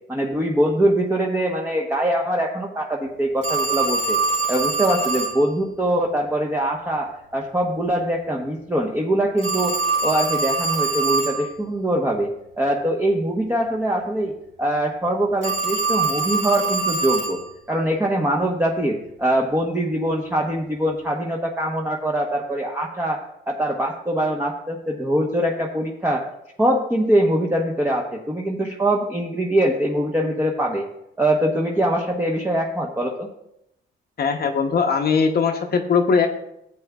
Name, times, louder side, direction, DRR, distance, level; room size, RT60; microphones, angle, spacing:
voice 1, 0.1-4.2 4.5-9.7 10.0-12.3 12.6-14.3 14.6-17.4 17.7-23.2 23.5-26.2 26.6-30.9 31.2-33.3, right 1 dB, 10° right, -1 dB, 1.0 m, -23 dB
Telephone, 3.4-5.4 9.4-11.4 15.4-17.4, right 3 dB, 75° right, 3.0 m, -23 dB
voice 2, 34.2-36.4, left 5 dB, 50° left, 5 dB, 0.8 m, -20 dB
12.5 x 8.3 x 2.3 m, 0.82 s
cardioid pair, 90°, 20 cm